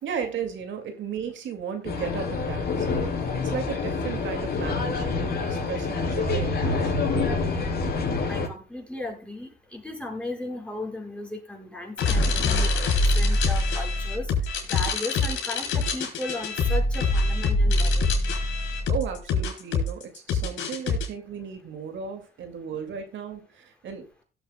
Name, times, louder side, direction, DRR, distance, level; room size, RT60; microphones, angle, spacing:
voice 1, 0.0-2.9 3.4-7.1 18.9-24.2, right 7 dB, 75° right, 6 dB, 2.1 m, -35 dB
sound 1, 1.8-8.5, left 4 dB, 50° left, 4.0 m, -27 dB
voice 2, 8.3-14.3 14.6-18.1, left 2 dB, 5° left, 1 dB, 5.3 m, -36 dB
sound 2, 12.0-21.1, left 2 dB, 75° left, 4.4 m, -24 dB
17.5 x 7.9 x 2.2 m, 0.34 s
cardioid pair, 90°, 20 cm